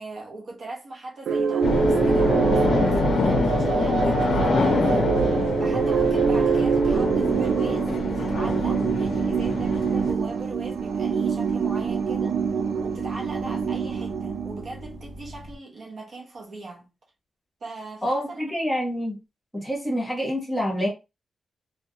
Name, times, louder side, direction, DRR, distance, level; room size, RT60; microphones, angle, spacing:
voice 1, 0.0-5.1 5.6-12.4 12.8-16.9 17.6-18.5, right 2 dB, 55° right, 0.6 m, -40 dB
sound 1, 1.3-15.0, right 6 dB, 90° right, 0.3 m, -25 dB
sound 2, 1.6-10.1, left 3 dB, 65° left, 0.5 m, -25 dB
sound 3, 2.9-15.6, equal, 35° right, 1.2 m, -44 dB
voice 2, 18.0-19.2 19.5-20.9, equal, 5° left, 0.9 m, -27 dB
2.3 x 2.0 x 2.7 m
wide cardioid pair, 165°, 0 cm